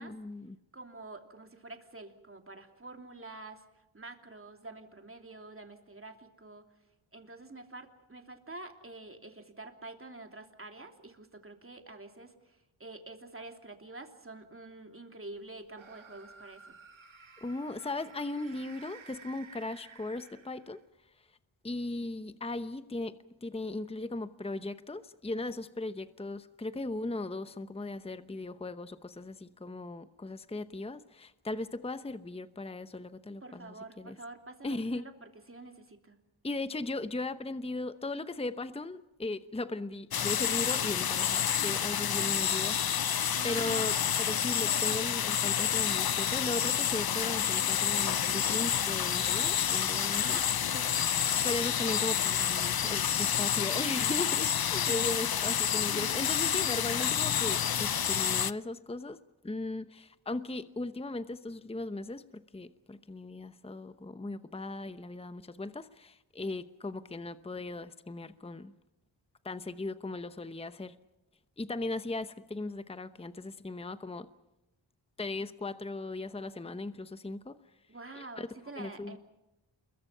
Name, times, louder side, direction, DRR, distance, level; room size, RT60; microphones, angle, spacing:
voice 1, 0.0-0.6 17.4-20.8 21.6-34.2 34.6-35.0 36.4-50.4 51.4-59.2 59.4-68.7 69.4-70.9 71.6-74.3 75.2-77.6 78.2-78.5 78.8-79.2, left 2 dB, 10° left, 11 dB, 0.9 m, -37 dB
voice 2, 0.7-3.6 3.9-6.6 7.1-16.7 33.4-36.2 43.3-44.0 50.2-50.9 54.9-55.0 77.9-79.2, right 2 dB, 25° right, 5 dB, 3.1 m, -47 dB
sound 1, 15.7-20.9, right 5 dB, 80° right, 2.0 m, -53 dB
sound 2, 40.1-58.5, left 8 dB, 50° left, 0.7 m, -29 dB
28.5 x 22.5 x 5.7 m, 0.94 s
wide cardioid pair, 80°, 47 cm